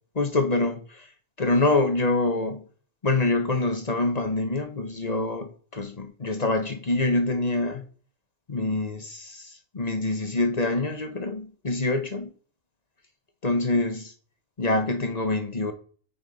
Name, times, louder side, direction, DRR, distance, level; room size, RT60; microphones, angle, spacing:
voice 1, 0.1-1.1 1.4-2.6 3.0-7.8 8.5-12.3 13.4-14.1 14.6-15.7, left 2 dB, 30° left, 1.2 m, -25 dB
8.9 x 5.6 x 4.1 m
omnidirectional pair, 1.4 m